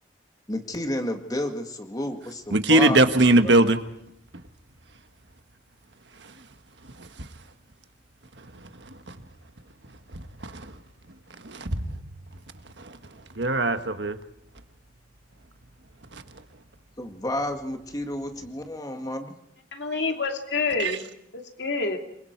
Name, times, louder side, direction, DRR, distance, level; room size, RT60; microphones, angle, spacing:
voice 1, 0.5-3.0 3.4-3.5 17.0-19.4, left 1 dB, 20° left, 2.0 m, -31 dB
voice 2, 2.5-3.8 10.4-10.6 11.4-12.0 13.4-14.2, right 2 dB, 70° right, 1.5 m, -20 dB
voice 3, 19.7-21.1 21.3-22.0, left 4 dB, 70° left, 2.7 m, -28 dB
28.0 x 22.0 x 4.7 m
head